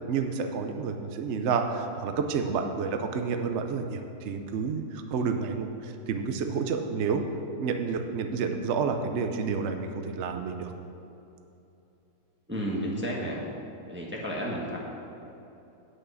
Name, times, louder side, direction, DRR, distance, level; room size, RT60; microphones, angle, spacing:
voice 1, 0.0-7.2 7.6-10.7, right 5 dB, 60° right, 6 dB, 0.7 m, -30 dB
voice 2, 12.5-13.4 13.9-14.8, equal, 10° right, -3 dB, 1.1 m, -32 dB
8.3 x 6.4 x 7.7 m, 2.8 s
omnidirectional pair, 1.9 m